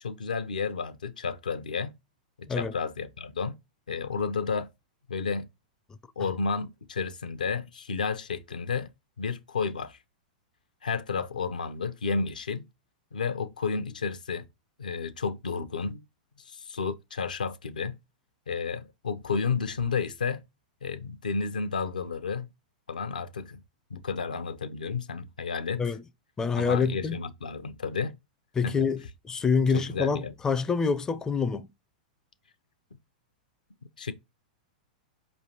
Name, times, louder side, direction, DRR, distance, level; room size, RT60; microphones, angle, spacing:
voice 1, 0.0-1.9 2.4-3.6 3.9-4.7 5.1-5.5 6.2-8.9 9.2-10.0 10.8-12.7 13.1-14.5 14.8-16.1 16.4-18.0 18.5-20.4 20.8-22.5 22.9-23.6 23.9-25.8 26.6-28.2 28.6-28.8 29.7-30.3 34.0-34.1, left 5 dB, 85° left, 0.5 m, -31 dB
voice 2, 26.4-27.2 28.6-31.7, left 5 dB, 15° left, 0.4 m, -26 dB
4.8 x 3.1 x 2.8 m
hypercardioid pair, 110°, 4 cm